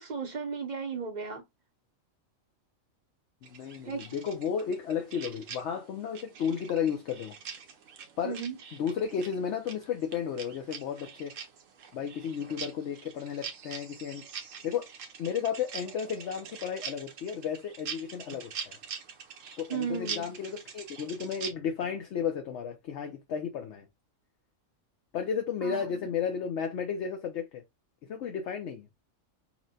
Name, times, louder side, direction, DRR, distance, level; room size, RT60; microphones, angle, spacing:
voice 1, 0.0-1.4 3.8-4.1 8.2-8.5 19.7-20.3 25.6-26.1, right 6 dB, 45° right, 0.6 m, -35 dB
voice 2, 3.4-7.4 8.2-8.4 8.8-11.3 11.9-14.2 14.6-14.9 15.2-18.8 19.6-23.9 25.1-27.6 28.1-28.9, left 7 dB, 65° left, 0.9 m, -33 dB
sound 1, 3.4-21.5, right 7 dB, 75° right, 1.1 m, -44 dB
5.7 x 2.1 x 2.7 m
omnidirectional pair, 1.4 m